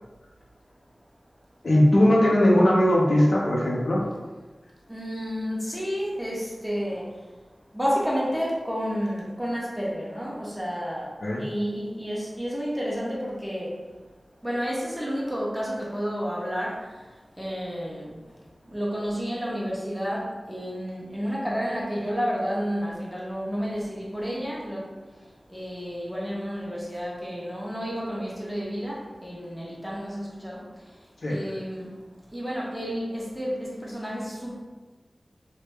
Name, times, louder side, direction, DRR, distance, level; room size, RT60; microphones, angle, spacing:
voice 1, 1.6-4.0 11.2-11.4 31.2-31.4, left 1 dB, 75° left, -4 dB, 0.5 m, -19 dB
voice 2, 4.9-7.1 7.7-11.1 11.4-13.7 14.4-16.7 17.4-18.2 18.7-24.8 25.5-30.6 31.3-31.9 32.3-34.6, equal, ahead, -6 dB, 1.0 m, -30 dB
3.2 x 2.1 x 3.2 m, 1.3 s
wide cardioid pair, 45°, 0 cm